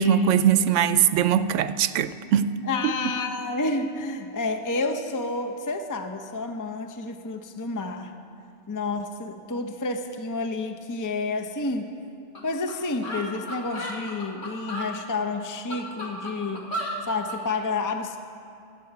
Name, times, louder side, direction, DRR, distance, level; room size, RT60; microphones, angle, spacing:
voice 1, 0.0-2.5, right 8 dB, 80° right, 1.0 m, -21 dB
voice 2, 2.6-8.1 8.7-11.9 12.4-16.7 17.1-18.2, left 3 dB, 20° left, 0.6 m, -30 dB
sound 1, 12.3-12.4 12.7-12.8 13.0-14.9 15.5-17.4, equal, 80° left, 2.5 m, -33 dB
15.0 x 8.4 x 9.0 m
omnidirectional pair, 1.3 m